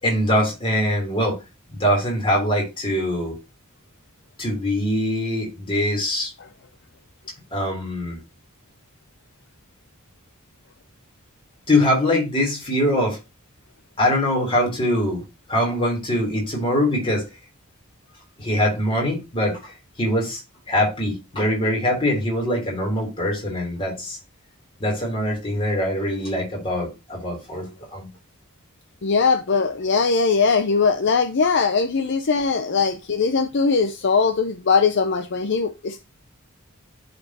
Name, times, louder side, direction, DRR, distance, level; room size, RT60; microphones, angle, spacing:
voice 1, 0.0-1.4 1.7-3.4 4.4-6.3 7.5-8.2 11.7-13.2 14.0-15.2 15.5-17.2 18.4-20.4 20.7-24.2 24.8-28.1, left 1 dB, 25° left, 3.3 m, -23 dB
voice 2, 29.0-36.0, left 5 dB, 55° left, 0.6 m, -20 dB
11.0 x 4.3 x 2.8 m
head